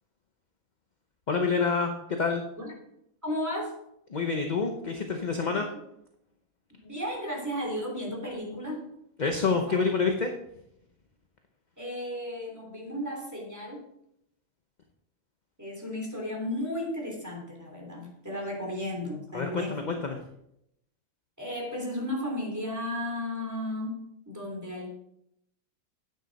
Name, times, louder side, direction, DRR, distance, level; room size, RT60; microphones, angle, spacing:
voice 1, 1.3-2.4 4.1-5.7 9.2-10.3 19.3-20.2, left 4 dB, 40° left, 4 dB, 0.8 m, -27 dB
voice 2, 3.2-3.7 5.5-5.8 6.8-8.8 9.4-9.9 11.8-13.8 15.6-19.8 21.4-24.9, left 1 dB, 10° right, -1 dB, 3.2 m, -34 dB
10.5 x 9.0 x 4.1 m, 0.78 s
omnidirectional pair, 1.5 m